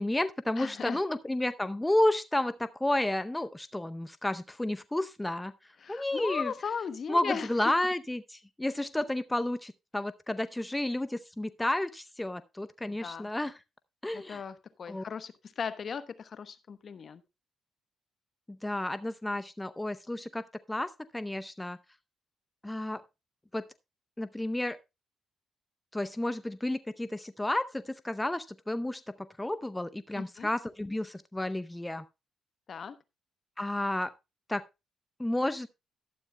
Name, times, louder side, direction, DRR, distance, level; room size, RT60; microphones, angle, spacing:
voice 1, 0.0-5.5 5.9-6.5 7.1-13.5 14.0-14.4 14.9-15.0 18.5-21.8 22.6-23.0 23.5-23.6 24.2-24.8 25.9-32.0 33.6-34.1 34.5-34.6 35.2-35.7, left 1 dB, 10° left, 0.7 m, -31 dB
voice 2, 0.6-1.0 5.8-7.7 12.9-13.3 14.1-17.2 30.1-30.5 32.7-33.0, left 6 dB, 55° left, 1.0 m, -37 dB
12.0 x 11.5 x 2.2 m
supercardioid pair, 60°, 0 cm